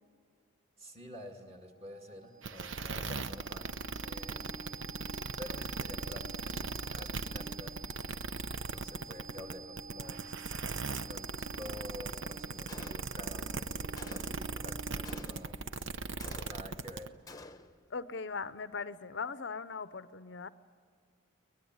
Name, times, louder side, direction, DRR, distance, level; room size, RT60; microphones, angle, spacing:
voice 1, 0.8-4.5 5.4-7.9 8.6-10.2 10.9-15.6 16.4-17.2, left 1 dB, 30° right, 2 dB, 2.2 m, -49 dB
sound 1, 1.7-15.5, right 4 dB, 45° right, 2.7 m, -49 dB
sound 2, 2.4-17.1, right 4 dB, 65° right, 0.8 m, -38 dB
Gunshot gunfire, 12.7-13.4 14.0-14.5 15.0-15.7 16.2-16.9 17.3-17.8, left 2 dB, 15° left, 0.8 m, -50 dB
voice 2, 17.9-20.5, left 4 dB, 55° left, 14 dB, 0.6 m, -39 dB
23.5 x 19.5 x 9.6 m, 2.2 s
head